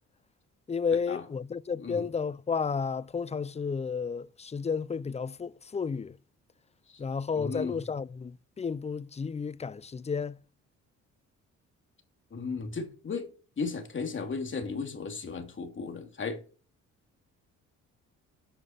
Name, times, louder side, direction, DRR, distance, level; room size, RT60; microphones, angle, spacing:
voice 1, 0.7-6.2 7.0-10.4, left 5 dB, 20° left, 0.5 m, -32 dB
voice 2, 1.8-2.1 6.9-7.0 7.3-7.8 12.3-13.3 13.6-16.4, left 4 dB, 40° left, 2.8 m, -35 dB
9.1 x 6.1 x 6.9 m
cardioid pair, 90°, 30 cm